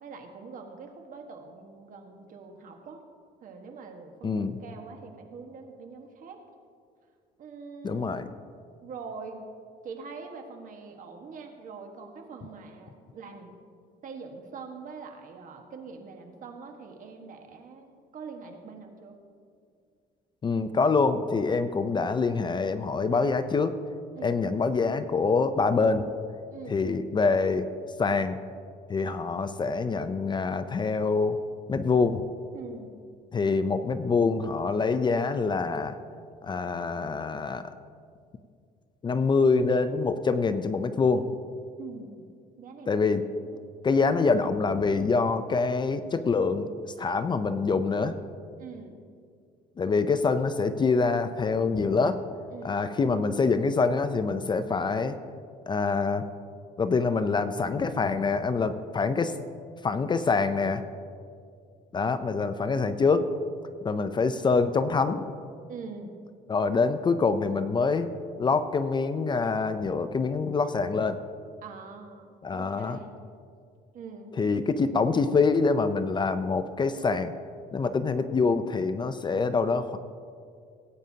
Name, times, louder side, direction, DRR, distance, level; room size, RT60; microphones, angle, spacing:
voice 1, 0.0-3.0 3.4-6.4 7.4-8.2 8.8-9.4 9.8-13.6 14.0-19.2 24.1-24.4 26.5-26.8 32.5-33.0 41.8-42.3 42.6-43.1 43.4-44.1 48.6-49.0 52.5-52.8 65.7-66.2 71.6-73.2 73.9-74.4, right 5 dB, 50° right, 4 dB, 1.4 m, -44 dB
voice 2, 4.2-4.5 7.8-8.3 20.4-23.8 24.2-26.0 26.7-27.7 28.0-28.4 28.9-31.4 31.7-32.2 33.3-36.0 36.4-37.7 39.0-41.3 42.9-43.2 43.8-46.7 47.0-48.1 49.8-52.2 52.6-55.2 55.7-56.2 56.8-59.3 59.8-60.8 61.9-63.3 63.8-65.3 66.5-68.1 68.4-71.2 72.4-73.0 74.4-77.3 77.7-80.0, left 4 dB, 25° left, 11 dB, 0.5 m, -25 dB
18.5 x 9.0 x 2.8 m, 2.2 s
cardioid pair, 110°, 17 cm